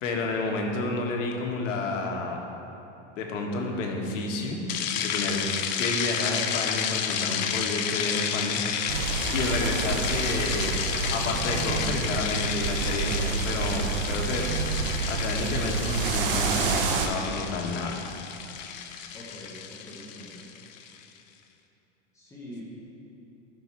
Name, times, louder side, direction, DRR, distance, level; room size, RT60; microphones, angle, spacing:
voice 1, 0.0-2.4 3.1-4.6 5.0-5.4 5.8-8.9 9.3-10.8 11.1-14.4 15.1-18.0, left 3 dB, 80° left, 1 dB, 1.6 m, -30 dB
sound 1, 4.7-21.0, left 8 dB, 40° left, 0.5 m, -31 dB
sound 2, 8.9-17.1, right 5 dB, 45° right, 0.8 m, -29 dB
voice 2, 19.1-20.5 22.1-22.6, left 1 dB, 10° left, -5 dB, 0.8 m, -44 dB
12.5 x 6.2 x 4.5 m, 3.0 s
supercardioid pair, 180°, 37 cm